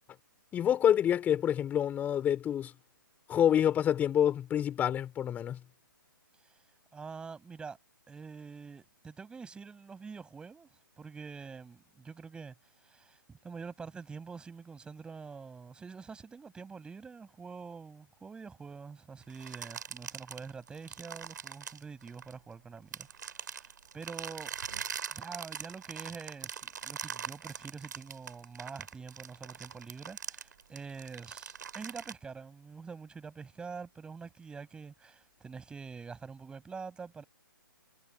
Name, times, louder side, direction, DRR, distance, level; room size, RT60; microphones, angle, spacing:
voice 1, 0.5-2.7 3.3-5.6, left 10 dB, 15° left, 4.6 m, -27 dB
voice 2, 6.9-7.8 8.1-12.5 12.8-24.5 25.1-37.2, right 5 dB, 10° right, 6.5 m, -46 dB
sound 1, 19.3-22.5 22.9-32.1, right 7 dB, 60° right, 4.8 m, -42 dB
figure-of-eight pair, 135°, 11 cm